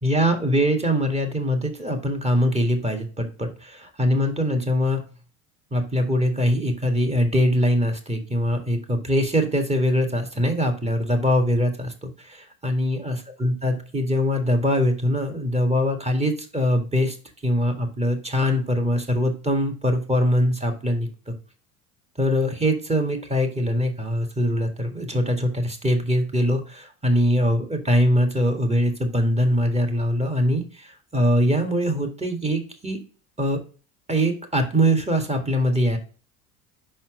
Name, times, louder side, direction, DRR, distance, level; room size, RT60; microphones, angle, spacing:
voice 1, 0.0-5.0 5.7-17.2 17.4-21.3 22.2-33.0 33.4-33.6 34.1-36.0, equal, 15° right, 2 dB, 1.9 m, -22 dB
5.6 x 4.3 x 4.9 m, 0.36 s
hypercardioid pair, 85°, 45 cm